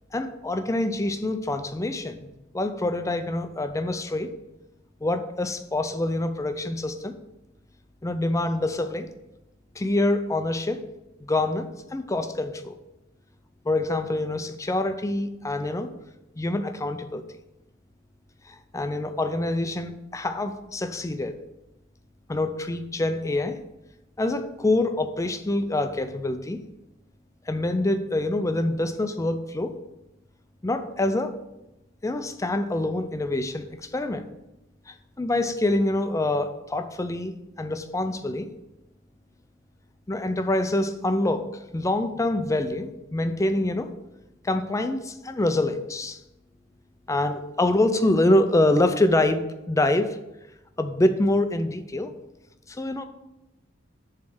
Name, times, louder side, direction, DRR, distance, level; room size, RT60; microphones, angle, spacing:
voice 1, 0.1-4.3 5.0-7.1 8.0-9.1 9.8-10.8 11.3-12.8 13.6-15.9 16.4-17.2 18.5-21.4 22.3-23.6 24.2-26.6 27.5-29.8 30.6-31.3 32.0-34.2 34.9-38.5 40.1-43.9 44.4-46.2 47.1-50.2 50.8-52.1 52.7-53.0, left 1 dB, 15° left, 8 dB, 0.5 m, -26 dB
7.1 x 3.3 x 6.2 m, 0.94 s
head